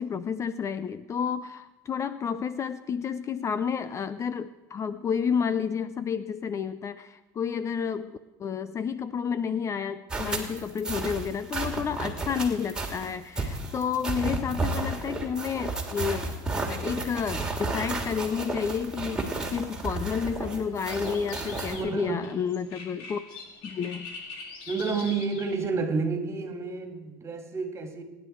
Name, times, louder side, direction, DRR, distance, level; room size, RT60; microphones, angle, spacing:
voice 1, 0.0-16.2 16.7-23.2 23.6-24.1, left 7 dB, 30° left, 14 dB, 0.6 m, -30 dB
sound 1, 10.1-21.8, right 2 dB, 10° right, 2.8 m, -32 dB
sound 2, 18.8-25.7, left 4 dB, 65° left, 3.5 m, -43 dB
voice 2, 21.7-22.4 24.7-28.0, right 4 dB, 25° right, 5 dB, 2.7 m, -30 dB
25.0 x 10.5 x 4.6 m, 1.1 s
supercardioid pair, 115°, 10 cm